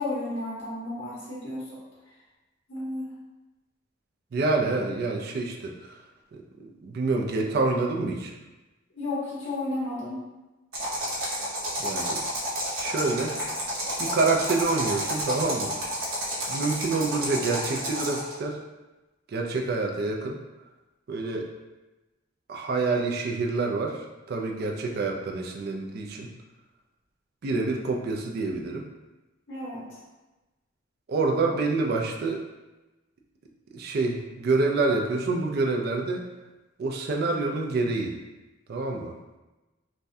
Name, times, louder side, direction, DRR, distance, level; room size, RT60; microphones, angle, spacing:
voice 1, 0.0-1.7 2.7-3.1 8.9-10.2 29.5-30.0, left 2 dB, 70° left, -7 dB, 1.0 m, -32 dB
voice 2, 4.3-6.0 6.3-8.3 11.8-12.2 12.7-13.4 14.0-15.7 16.5-18.6 19.3-20.4 21.1-21.5 22.5-26.3 27.4-28.8 31.1-32.4 33.7-36.3 36.8-38.2 38.7-39.2, right 3 dB, 50° right, 1 dB, 0.4 m, -27 dB
sound 1, 10.7-18.3, equal, 90° right, 0.8 m, -30 dB
3.4 x 2.1 x 2.6 m, 1.1 s
head